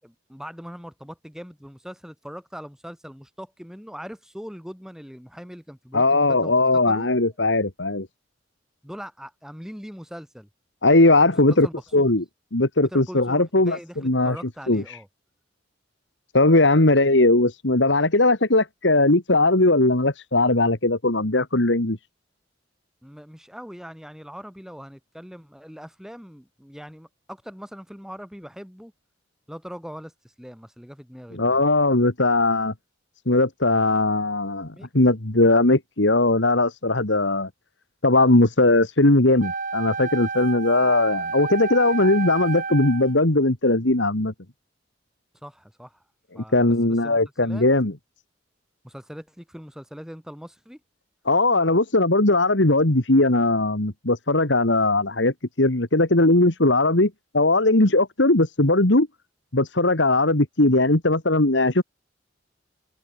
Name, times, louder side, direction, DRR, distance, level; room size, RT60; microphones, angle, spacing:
voice 1, 0.0-7.1 8.8-10.5 11.3-12.1 12.8-15.1 23.0-28.9 29.5-31.7 34.7-34.9 45.4-46.0 46.3-47.7 48.8-50.8, equal, 5° right, 7.9 m, -41 dB
voice 2, 5.9-8.1 10.8-11.7 11.9-12.2 12.5-14.4 14.7-15.0 16.3-22.0 31.3-32.7 33.3-37.5 38.0-44.3 46.4-47.9 51.3-59.1 59.5-61.8, left 2 dB, 70° left, 2.4 m, -19 dB
Wind instrument woodwind instrument, 39.4-43.2, right 4 dB, 45° right, 2.8 m, -30 dB
open air
head